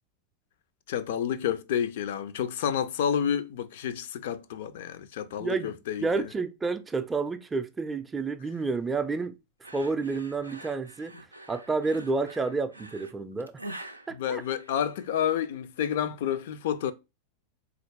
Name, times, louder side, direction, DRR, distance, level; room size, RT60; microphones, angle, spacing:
voice 1, 0.9-6.2 14.1-16.9, left 9 dB, 55° left, 0.4 m, -30 dB
voice 2, 5.4-9.3 9.7-11.1 11.5-13.6 14.1-14.4, right 4 dB, 15° right, 0.4 m, -30 dB
sound 1, 9.6-15.2, right 1 dB, 85° right, 0.4 m, -45 dB
3.9 x 2.5 x 3.1 m
figure-of-eight pair, 90°, 0 cm